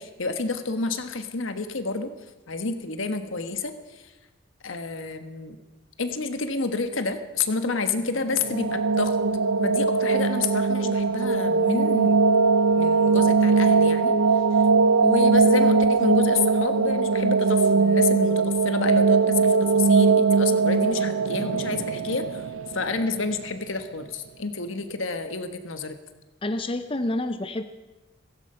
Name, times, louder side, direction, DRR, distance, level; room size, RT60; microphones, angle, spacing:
voice 1, 0.0-2.1 2.5-4.1 4.6-5.6 6.0-9.2 9.6-12.3 12.7-14.1 14.5-14.6 15.0-22.5 22.7-26.0, left 4 dB, 80° left, 8 dB, 1.3 m, -29 dB
sound 1, 8.2-23.2, right 4 dB, 85° right, 0.6 m, -20 dB
voice 2, 26.4-27.6, left 1 dB, 25° left, 9 dB, 0.5 m, -28 dB
16.0 x 15.5 x 5.6 m, 1.2 s
head